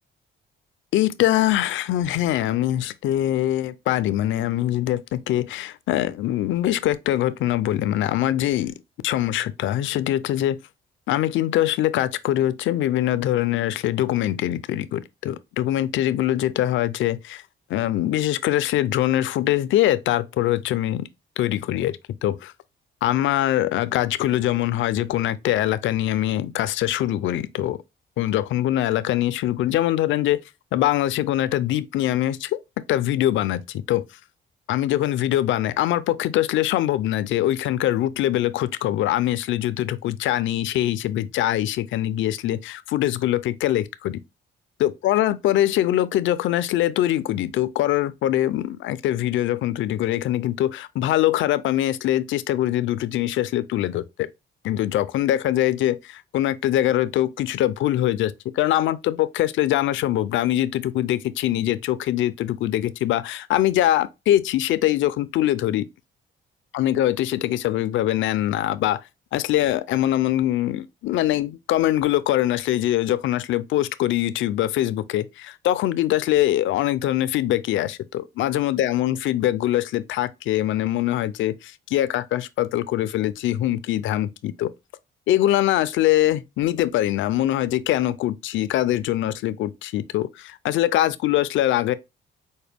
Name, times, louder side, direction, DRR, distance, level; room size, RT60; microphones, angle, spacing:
voice 1, 0.9-8.7 9.0-10.6 11.1-17.4 17.7-21.1 21.4-22.5 23.0-27.8 28.2-30.4 30.7-32.6 32.9-34.0 34.7-44.2 44.8-54.3 54.6-65.9 66.7-69.0 69.3-84.7 85.3-91.9, left 13 dB, 75° left, 0.4 m, -23 dB
4.9 x 2.2 x 3.4 m
cardioid pair, 90°, 20 cm